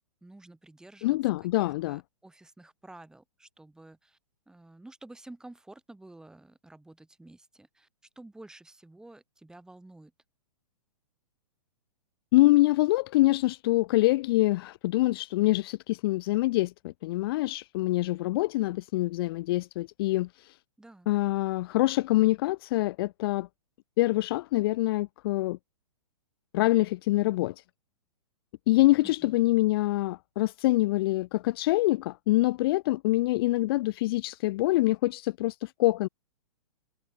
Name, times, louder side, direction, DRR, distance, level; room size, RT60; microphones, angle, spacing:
voice 1, 0.2-4.2 4.5-7.9 8.2-10.1 20.8-21.1 29.0-29.4, right 2 dB, 5° right, 5.3 m, -51 dB
voice 2, 1.0-2.0 12.3-20.5 21.1-23.5 24.0-25.6 26.5-27.5 28.7-36.1, left 18 dB, 40° left, 0.7 m, -25 dB
hypercardioid pair, 150°, 19 cm